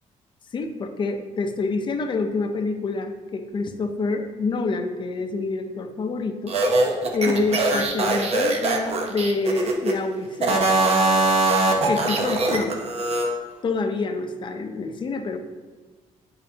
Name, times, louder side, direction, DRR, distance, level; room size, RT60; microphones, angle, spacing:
voice 1, 0.5-6.5 7.1-10.7 11.9-12.8 13.6-15.4, left 3 dB, 35° left, 7 dB, 0.6 m, -27 dB
sound 1, 6.5-10.0 10.4-13.3, right 2 dB, 50° right, 0.9 m, -22 dB
9.6 x 5.3 x 2.8 m, 1.4 s
cardioid pair, 140°, 13 cm